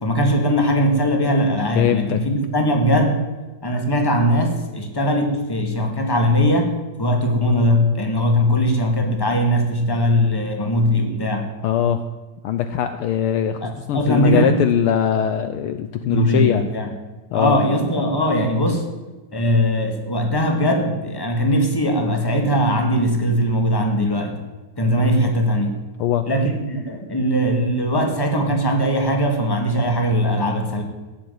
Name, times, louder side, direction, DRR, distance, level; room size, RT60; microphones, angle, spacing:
voice 1, 0.0-3.2 3.6-11.5 13.6-14.6 16.0-16.9 17.3-18.8 19.3-24.4 24.8-25.7 26.3-30.8, equal, 10° left, 4 dB, 1.6 m, -20 dB
voice 2, 1.8-2.2 11.6-12.0 12.4-16.7 17.3-17.6 26.0-26.3, left 9 dB, 85° left, 9 dB, 1.2 m, -21 dB
16.0 x 7.7 x 9.4 m, 1.2 s
omnidirectional pair, 3.3 m